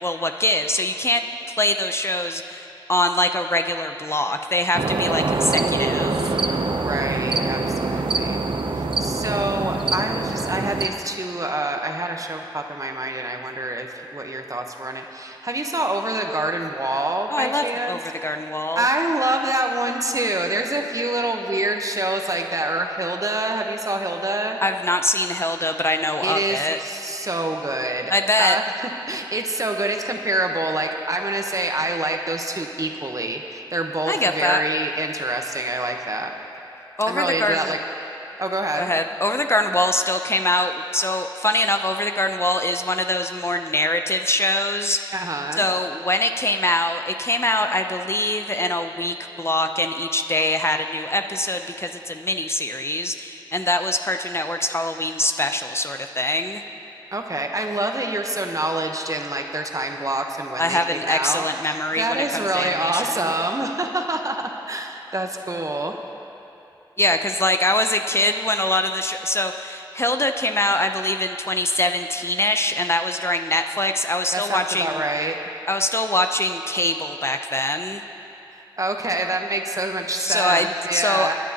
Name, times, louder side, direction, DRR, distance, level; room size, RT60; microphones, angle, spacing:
voice 1, 0.0-1.2 1.6-6.3 17.3-18.8 24.6-26.8 28.1-28.6 34.1-34.6 37.0-37.7 38.8-45.1 45.6-56.6 60.6-63.3 67.0-75.0 75.7-78.0 80.2-81.3, left 1 dB, 30° left, 6 dB, 0.6 m, -23 dB
sound 1, 4.7-10.9, right 3 dB, 85° right, 0.6 m, -24 dB
voice 2, 6.6-8.4 8.7-13.9 14.1-18.0 18.7-24.6 26.2-28.1 28.4-36.3 37.1-37.8 38.4-38.9 45.1-45.6 57.1-66.0 74.3-75.4 78.8-81.3, right 1 dB, 40° right, 3 dB, 1.0 m, -26 dB
24.5 x 10.0 x 2.9 m, 2.9 s
wide cardioid pair, 50°, 8 cm